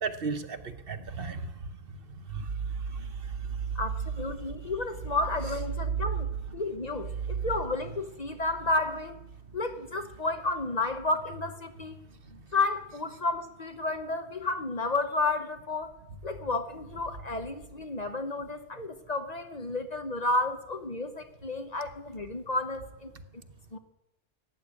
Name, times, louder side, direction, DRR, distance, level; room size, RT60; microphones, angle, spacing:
voice 1, 0.0-3.8 4.6-4.7 7.1-7.2 12.3-12.4, right 5 dB, 55° right, 10 dB, 1.1 m, -35 dB
voice 2, 3.7-9.2 9.5-11.9 12.5-16.0 16.2-23.1 23.7-23.8, left 2 dB, 40° left, 8 dB, 0.9 m, -31 dB
13.5 x 10.0 x 8.2 m, 0.91 s
omnidirectional pair, 1.2 m